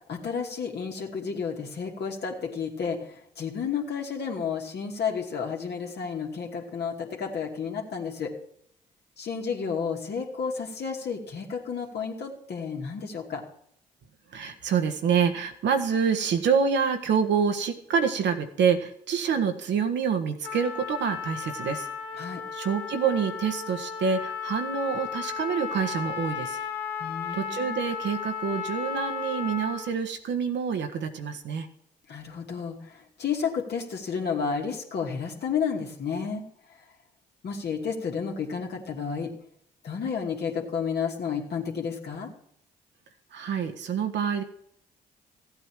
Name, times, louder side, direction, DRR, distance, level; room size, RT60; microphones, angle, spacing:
voice 1, 0.1-8.3 9.2-13.4 22.2-22.4 27.0-27.9 32.1-36.4 37.4-39.3 39.8-42.3, left 6 dB, 55° left, 1 dB, 2.6 m, -31 dB
voice 2, 14.3-21.9 22.5-26.6 27.3-31.7 43.3-44.4, right 6 dB, 65° right, 6 dB, 1.5 m, -27 dB
Trumpet, 20.4-29.9, left 6 dB, 90° left, 1.3 m, -35 dB
15.0 x 8.9 x 4.7 m, 0.70 s
hypercardioid pair, 45°, 20 cm